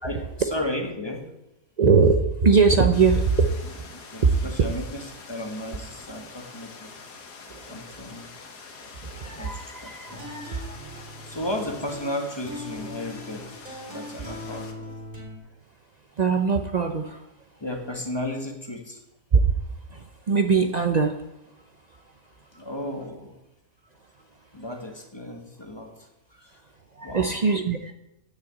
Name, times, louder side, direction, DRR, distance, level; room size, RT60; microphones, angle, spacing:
voice 1, 0.0-1.3 4.1-6.9 7.7-8.3 9.3-10.3 11.3-13.5 13.9-14.9 17.6-19.0 22.5-23.3 24.5-25.9 26.4-26.5 27.0-27.3, left 1 dB, 15° left, 3 dB, 1.4 m, -34 dB
voice 2, 1.8-3.8 4.2-4.4 7.5-8.0 8.8-11.2 16.1-17.3 19.3-19.4 19.9-21.2 21.5-22.1 22.5-22.6 26.9-27.9, right 5 dB, 80° right, 6 dB, 0.3 m, -22 dB
sound 1, 2.9-14.7, left 4 dB, 85° left, 1.9 m, -45 dB
sound 2, 10.1-15.4, left 1 dB, 30° right, 3.3 m, -40 dB
9.8 x 6.6 x 8.3 m, 0.90 s
omnidirectional pair, 1.7 m